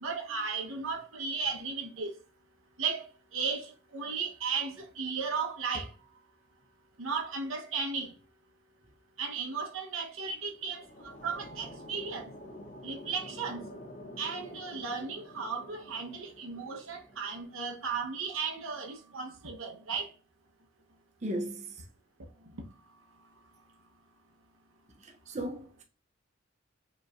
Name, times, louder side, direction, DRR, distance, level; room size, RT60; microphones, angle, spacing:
voice 1, 0.0-2.1 2.8-3.1 3.3-5.9 7.0-8.1 9.2-12.2 12.8-13.6 14.2-20.1, right 5 dB, 90° right, 1.0 m, -35 dB
sound 1, 10.4-17.6, left 1 dB, 40° left, 0.8 m, -48 dB
voice 2, 21.2-21.8 25.0-25.8, right 1 dB, 35° right, 0.6 m, -36 dB
4.9 x 3.1 x 2.4 m
head